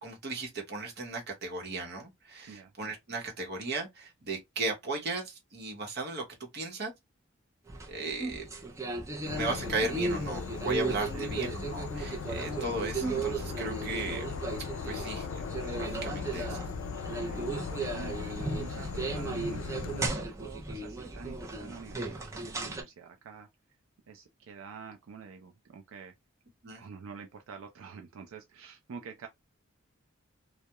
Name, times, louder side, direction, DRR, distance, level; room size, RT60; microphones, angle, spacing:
voice 1, 0.0-6.2 6.5-6.9 7.9-8.5 9.3-14.3 14.8-16.7 26.6-26.8, right 2 dB, 50° right, 0.8 m, -36 dB
sound 1, 7.7-22.8, right 3 dB, 15° right, 0.4 m, -36 dB
Insect / Frog, 9.3-20.1, left 5 dB, 80° left, 0.4 m, -38 dB
voice 2, 17.2-20.1 20.4-23.5 24.1-26.1 26.8-29.3, right 5 dB, 80° right, 0.4 m, -47 dB
2.2 x 2.0 x 2.7 m
head